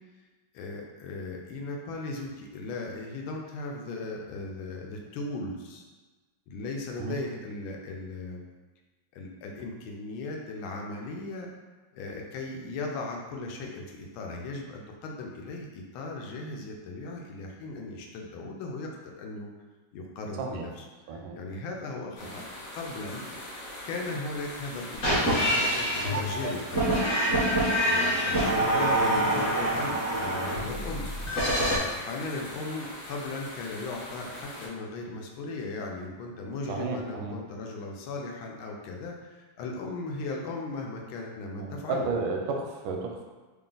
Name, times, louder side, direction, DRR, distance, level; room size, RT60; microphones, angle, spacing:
voice 1, 0.5-5.8 6.5-8.4 9.1-11.5 11.9-19.5 19.9-22.4 22.7-23.2 23.8-26.7 27.8-31.1 31.5-42.1, left 3 dB, 90° left, 0 dB, 1.4 m, -37 dB
sound 1, 22.2-34.7, left 1 dB, 60° left, 1.4 m, -42 dB
sound 2, 24.9-31.8, right 1 dB, 45° left, 1.2 m, -26 dB
voice 2, 36.7-37.4 41.6-43.3, right 4 dB, 85° right, 1 dB, 1.4 m, -32 dB
3.6 x 2.4 x 3.8 m, 1.3 s
omnidirectional pair, 2.2 m